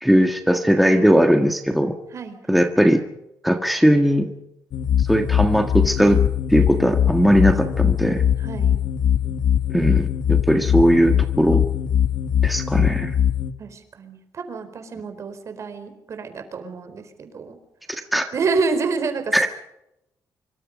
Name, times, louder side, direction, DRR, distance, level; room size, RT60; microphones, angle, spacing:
voice 1, 0.0-2.0 2.5-3.0 3.4-4.3 5.0-6.2 6.5-8.2 9.7-11.6 12.4-13.2 17.9-18.3 19.3-19.5, equal, ahead, 5 dB, 1.6 m, -18 dB
voice 2, 2.1-2.7 8.4-8.8 9.2-9.3 13.6-17.6 18.3-19.5, right 4 dB, 50° right, 8 dB, 4.4 m, -28 dB
sound 1, 4.7-13.5, left 9 dB, 75° left, 1.6 m, -21 dB
25.5 x 24.0 x 5.3 m, 0.86 s
cardioid pair, 130°, 7 cm